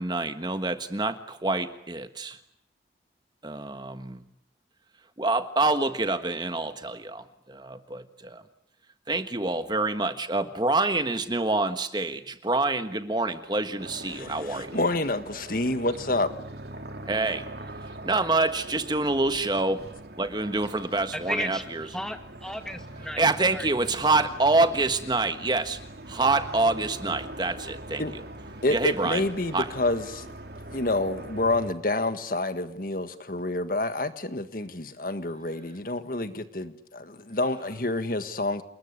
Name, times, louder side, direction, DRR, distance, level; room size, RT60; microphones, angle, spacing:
voice 1, 0.0-2.4 3.4-4.2 5.2-8.4 9.1-14.8 17.1-17.5 17.8-19.8 20.2-21.9 23.0-25.8 26.1-28.0 28.7-29.2 29.5-29.7, right 2 dB, 25° right, 10 dB, 1.4 m, -26 dB
sound 1, 13.8-31.7, right 1 dB, 60° right, 3.3 m, -42 dB
voice 2, 14.1-16.3 28.0-28.1 28.6-30.3 30.7-38.6, left 2 dB, 50° left, 11 dB, 1.7 m, -28 dB
voice 3, 21.1-21.6 21.9-23.3 23.5-23.7, equal, 5° left, 7 dB, 2.1 m, -34 dB
29.0 x 21.0 x 9.7 m, 0.69 s
head